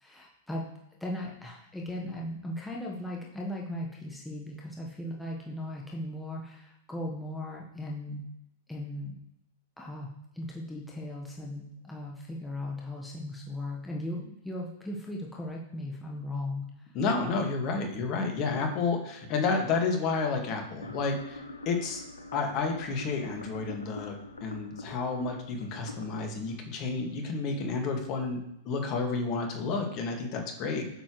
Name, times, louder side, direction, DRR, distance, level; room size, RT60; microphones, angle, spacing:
voice 1, 0.0-0.7 1.0-8.2 8.7-9.1 9.8-10.1 10.3-16.9, left 1 dB, 5° left, -2 dB, 1.3 m, -37 dB
voice 2, 16.9-22.0 22.3-24.2 24.4-31.0, left 4 dB, 40° left, 3 dB, 2.0 m, -31 dB
sound 1, 20.8-27.8, left 2 dB, 90° left, 0.9 m, -46 dB
8.8 x 7.2 x 3.2 m, 0.82 s
figure-of-eight pair, 100°, 0 cm